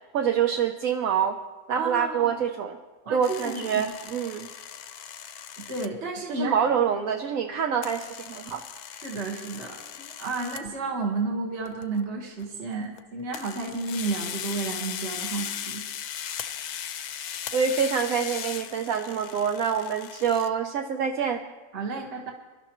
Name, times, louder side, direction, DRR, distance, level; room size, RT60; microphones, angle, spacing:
voice 1, 0.1-1.4 1.7-2.8 3.1-4.5 6.3-8.6 17.5-21.4, right 7 dB, 65° right, 5 dB, 1.1 m, -26 dB
voice 2, 1.7-2.3 3.0-3.8 5.6-6.7 8.9-15.8 21.7-22.3, right 3 dB, 45° right, -1 dB, 1.8 m, -32 dB
sound 1, 3.2-5.9 7.8-10.7 11.7-12.0 12.4-13.0 13.3-20.5, left 9 dB, 75° left, 1.2 m, -38 dB
24.0 x 12.0 x 3.0 m, 1.2 s
omnidirectional pair, 1.7 m